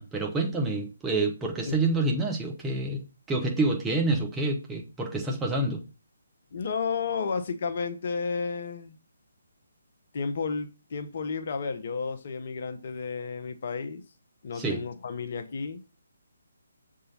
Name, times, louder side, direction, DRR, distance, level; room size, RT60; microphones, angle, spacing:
voice 1, 0.0-3.0 3.3-5.8 14.6-14.8, right 2 dB, 10° right, 1.1 m, -27 dB
voice 2, 6.5-9.0 10.1-14.0 14.4-15.8, left 5 dB, 45° left, 0.7 m, -32 dB
6.7 x 3.7 x 4.0 m
figure-of-eight pair, 140°, 0 cm